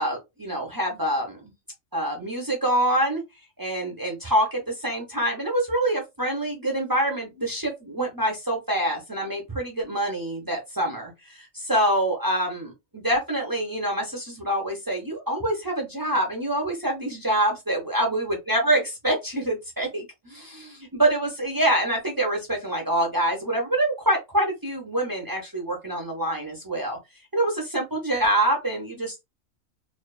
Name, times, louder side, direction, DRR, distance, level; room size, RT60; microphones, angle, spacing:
voice 1, 0.0-1.5 1.9-3.2 3.6-27.0 27.3-29.2, right 1 dB, 30° right, 0.3 m, -26 dB
2.5 x 2.2 x 2.2 m
omnidirectional pair, 1.3 m